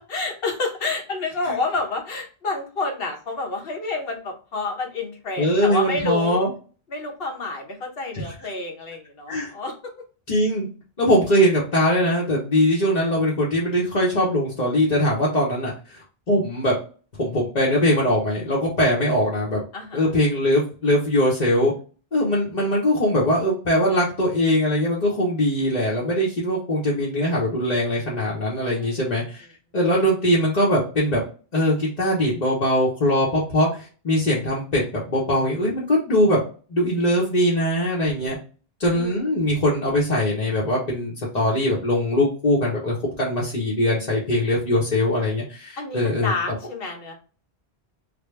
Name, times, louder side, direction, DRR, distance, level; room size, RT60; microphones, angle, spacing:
voice 1, 0.1-6.4 6.9-9.7 19.7-20.0 28.7-29.2 38.9-39.2 45.8-47.1, left 3 dB, 65° left, 2 dB, 1.2 m, -29 dB
voice 2, 5.4-6.5 8.1-8.3 9.3-9.5 10.3-10.7 11.0-16.8 17.2-19.6 19.9-21.7 22.1-29.4 29.7-31.2 31.5-36.4 36.7-38.4 38.8-46.3, equal, 45° left, -6 dB, 1.0 m, -21 dB
3.4 x 2.2 x 3.2 m, 0.37 s
omnidirectional pair, 1.0 m